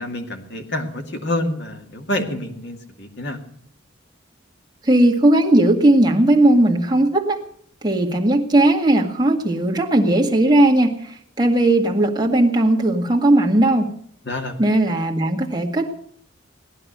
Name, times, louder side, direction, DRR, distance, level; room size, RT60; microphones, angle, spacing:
voice 1, 0.0-3.4 14.3-14.6, left 1 dB, 60° left, 4 dB, 2.3 m, -27 dB
voice 2, 4.8-7.4 7.8-13.9 14.6-15.9, right 1 dB, 20° right, 1 dB, 1.9 m, -17 dB
18.5 x 11.0 x 6.7 m, 0.63 s
head